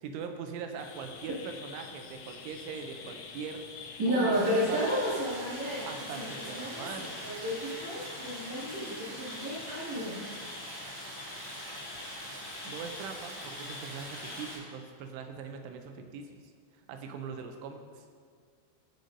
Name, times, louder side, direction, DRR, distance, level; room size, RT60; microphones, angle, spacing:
voice 1, 0.0-3.6 4.1-4.8 5.8-7.3 12.6-16.4 16.9-18.0, right 6 dB, 85° right, 5 dB, 3.2 m, -41 dB
sound 1, 0.8-14.5, left 5 dB, 75° left, 2.5 m, -46 dB
voice 2, 4.0-10.2, equal, 45° right, -11 dB, 3.2 m, -32 dB
Stream, 4.3-14.6, right 1 dB, 60° right, 4.6 m, -44 dB
19.5 x 6.5 x 2.7 m, 2.1 s
omnidirectional pair, 5.5 m